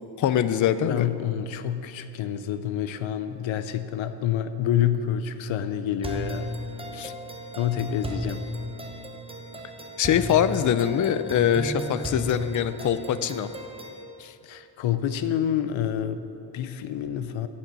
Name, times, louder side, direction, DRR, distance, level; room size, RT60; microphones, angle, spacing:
voice 1, 0.2-1.1 6.9-7.1 10.0-13.5 14.2-14.3, left 9 dB, 45° left, 13 dB, 0.4 m, -23 dB
voice 2, 0.9-6.5 7.6-8.4 14.4-17.5, left 10 dB, 80° left, 11 dB, 0.8 m, -28 dB
sound 1, 6.0-14.0, equal, 10° right, 0.9 m, -35 dB
9.1 x 7.4 x 8.1 m, 2.8 s
wide cardioid pair, 170°, 46 cm